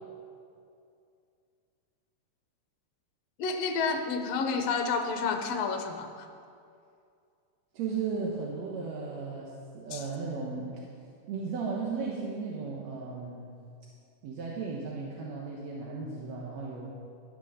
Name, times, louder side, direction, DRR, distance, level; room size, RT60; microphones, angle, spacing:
voice 1, 3.4-6.3 9.9-10.0, left 4 dB, 65° left, 6 dB, 1.9 m, -30 dB
voice 2, 7.7-10.8 11.3-13.5 14.2-16.9, right 4 dB, 70° right, -3 dB, 2.3 m, -35 dB
13.0 x 8.2 x 6.5 m, 2.4 s
omnidirectional pair, 3.4 m